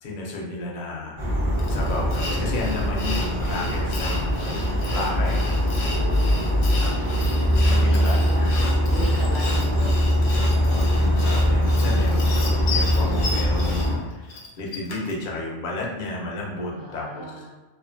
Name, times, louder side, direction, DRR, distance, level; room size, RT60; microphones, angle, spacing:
voice 1, 0.0-1.2 1.7-4.4 4.9-5.4 7.5-8.6 10.5-17.2, left 2 dB, 55° left, -3 dB, 0.6 m, -32 dB
sound 1, 1.2-13.9, equal, 30° right, 0.8 m, -22 dB
Sawing, 1.6-15.2, left 3 dB, 85° left, 1.0 m, -34 dB
voice 2, 5.9-10.0 16.7-17.5, right 2 dB, 70° right, -7 dB, 0.9 m, -39 dB
2.4 x 2.4 x 2.6 m, 1.1 s
omnidirectional pair, 1.3 m